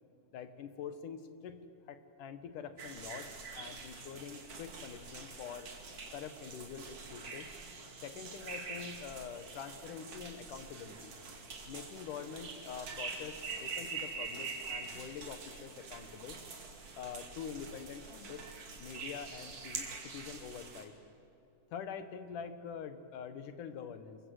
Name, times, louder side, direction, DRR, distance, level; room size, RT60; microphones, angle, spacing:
voice 1, 0.3-1.6 1.9-5.7 6.1-7.5 8.0-11.1 11.7-16.4 16.9-18.4 18.8-20.9 21.7-24.2, left 7 dB, 75° left, 10 dB, 2.9 m, -45 dB
sound 1, 2.8-20.8, right 4 dB, 50° right, 3.4 m, -45 dB
27.5 x 22.5 x 8.0 m, 2.8 s
omnidirectional pair, 3.7 m